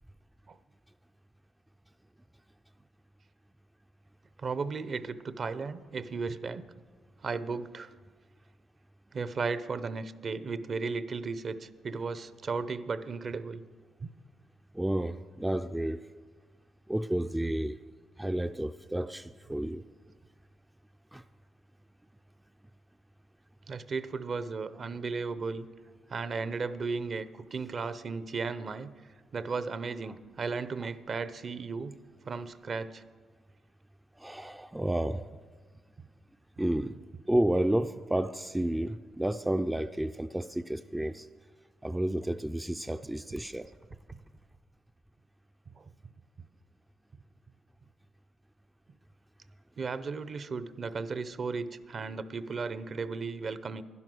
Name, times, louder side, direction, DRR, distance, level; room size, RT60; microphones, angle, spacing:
voice 1, 4.4-6.7 7.2-7.9 9.1-13.6 14.0-14.1 23.7-25.7 26.1-28.9 29.3-32.0 32.2-33.0 37.1-37.2 45.8-45.9 49.8-53.8, right 4 dB, 45° right, 14 dB, 0.6 m, -35 dB
voice 2, 14.7-16.0 16.9-17.8 18.2-19.8 21.1-21.2 30.8-30.9 34.2-35.3 36.6-37.0 37.3-41.3 41.8-43.7, right 1 dB, 10° right, 9 dB, 0.3 m, -31 dB
11.0 x 10.5 x 6.1 m, 1.5 s
cardioid pair, 90°, 0 cm